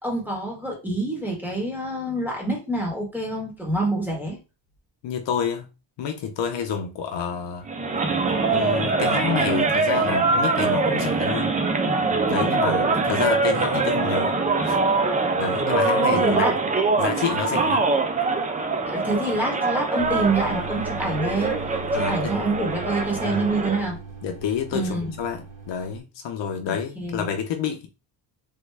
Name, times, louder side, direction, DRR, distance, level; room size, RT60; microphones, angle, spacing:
voice 1, 0.0-4.4 16.1-16.8 18.9-21.5 21.9-24.0 24.7-25.1 26.7-27.3, right 2 dB, 5° right, 1.1 m, -26 dB
voice 2, 5.0-5.7 6.0-7.7 8.2-11.5 12.3-14.8 15.4-16.5 17.0-17.9 21.9-22.4 23.2-23.5 24.2-27.9, left 7 dB, 65° left, 0.6 m, -29 dB
sound 1, 7.7-23.9, right 3 dB, 20° right, 0.3 m, -23 dB
sound 2, 20.0-26.0, right 5 dB, 45° right, 0.8 m, -38 dB
3.4 x 2.2 x 3.2 m
cardioid pair, 145°, 47 cm